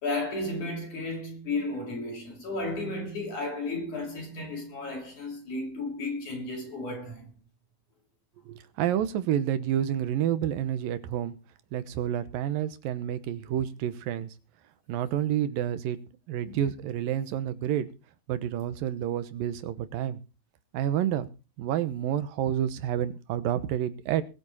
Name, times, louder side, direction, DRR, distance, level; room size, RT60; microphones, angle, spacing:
voice 1, 0.0-7.3 16.4-16.6, left 2 dB, 55° left, 7.0 m, -33 dB
voice 2, 8.5-11.3 11.7-14.3 14.9-16.0 16.3-17.9 18.3-20.2 20.7-21.3 21.6-24.2, right 10 dB, 80° right, 2.7 m, -29 dB
21.0 x 8.6 x 4.1 m
omnidirectional pair, 4.1 m